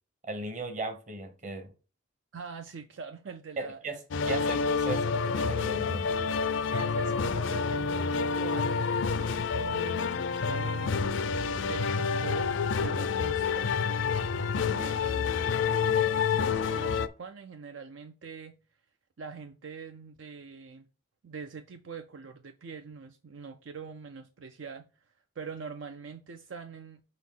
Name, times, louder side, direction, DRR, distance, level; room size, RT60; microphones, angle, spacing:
voice 1, 0.2-1.7 3.6-6.1 14.6-14.8, right 2 dB, 35° right, 1.1 m, -37 dB
voice 2, 2.3-4.0 6.7-11.0 11.6-13.7 14.7-15.6 16.1-18.6 19.2-20.9 21.2-24.9 25.4-27.0, right 5 dB, 65° right, 0.5 m, -43 dB
sound 1, 4.1-17.1, left 5 dB, 65° left, 0.4 m, -28 dB
5.0 x 4.1 x 5.5 m
head